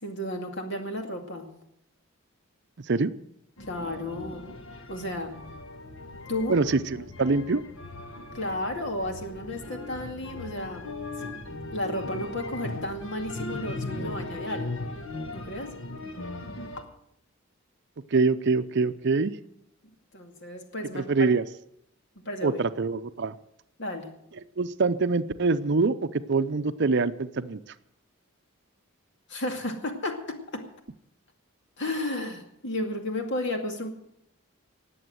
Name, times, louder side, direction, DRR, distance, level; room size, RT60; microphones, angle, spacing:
voice 1, 0.0-1.5 3.7-4.5 4.9-5.3 6.3-6.6 8.3-10.9 11.2-11.3 11.7-14.7 15.3-15.7 20.1-21.3 22.2-22.6 23.8-24.1 29.3-30.7 31.8-33.9, left 1 dB, 60° left, 4 dB, 2.3 m, -33 dB
sound 1, 3.6-16.8, left 2 dB, 75° left, 1.5 m, -38 dB
voice 2, 6.5-7.6 18.1-19.3 20.9-21.4 22.4-23.3 24.6-27.6, right 4 dB, 55° right, 12 dB, 0.6 m, -24 dB
19.0 x 7.9 x 7.7 m, 0.77 s
head